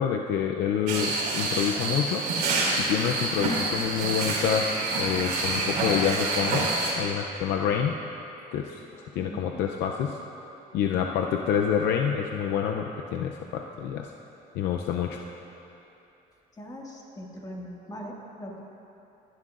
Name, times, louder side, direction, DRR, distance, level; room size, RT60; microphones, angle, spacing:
voice 1, 0.0-2.2 2.8-7.9 8.5-10.2 10.7-14.1 14.5-15.2, left 8 dB, 80° left, 2 dB, 0.6 m, -27 dB
sound 1, 0.9-6.9, right 3 dB, 85° right, 3.0 m, -27 dB
voice 2, 9.2-9.7 16.6-18.6, equal, 20° left, -2 dB, 2.0 m, -40 dB
20.0 x 11.5 x 2.5 m, 2.9 s
cardioid pair, 110°, 17 cm